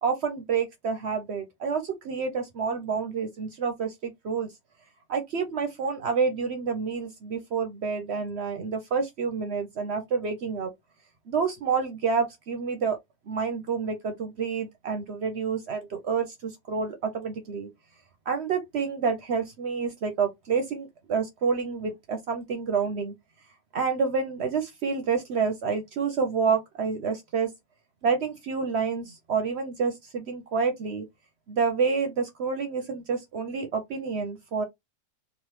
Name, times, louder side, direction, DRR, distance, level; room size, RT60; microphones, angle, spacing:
voice 1, 0.0-4.5 5.1-10.7 11.3-13.0 13.3-17.7 18.3-23.1 23.7-27.5 28.0-31.1 31.5-34.6, right 5 dB, 60° right, 0.8 m, -28 dB
3.1 x 2.5 x 3.0 m
omnidirectional pair, 1.4 m